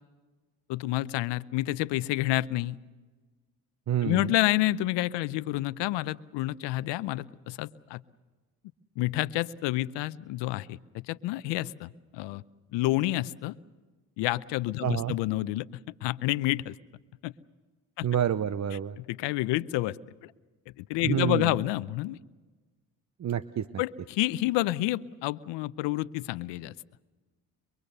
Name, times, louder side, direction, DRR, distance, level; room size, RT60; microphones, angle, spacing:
voice 1, 0.7-2.8 4.0-8.0 9.0-12.4 12.7-13.5 14.2-15.7 16.0-16.8 17.2-17.3 18.0-18.1 19.0-20.0 20.2-20.3 20.8-22.2 23.8-26.7, left 17 dB, 80° left, 16 dB, 0.8 m, -29 dB
voice 2, 3.9-4.3 14.8-15.1 18.0-19.0 21.0-21.5 23.2-23.7, right 10 dB, 40° right, 14 dB, 0.8 m, -28 dB
23.5 x 23.0 x 6.7 m, 1.3 s
supercardioid pair, 65°, 42 cm